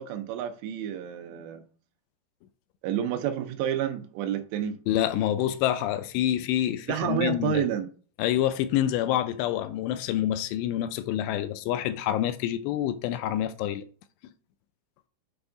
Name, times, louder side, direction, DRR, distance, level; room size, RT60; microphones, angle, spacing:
voice 1, 0.0-1.6 2.8-4.8 6.9-7.9, right 9 dB, 85° right, 3.0 m, -29 dB
voice 2, 4.9-7.6 8.2-13.8, left 12 dB, 85° left, 2.6 m, -27 dB
8.0 x 3.5 x 3.8 m
omnidirectional pair, 5.0 m